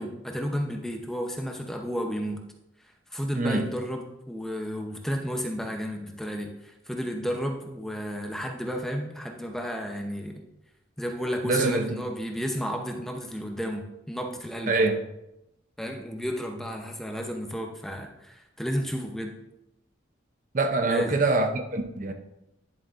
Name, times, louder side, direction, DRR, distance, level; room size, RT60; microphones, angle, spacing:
voice 1, 0.0-2.4 3.1-10.4 11.0-14.8 15.8-19.3 20.9-21.2, equal, ahead, 2 dB, 0.7 m, -32 dB
voice 2, 11.4-12.0 14.7-15.0 20.5-22.1, right 3 dB, 40° right, 6 dB, 0.6 m, -24 dB
10.5 x 7.4 x 2.5 m, 0.88 s
head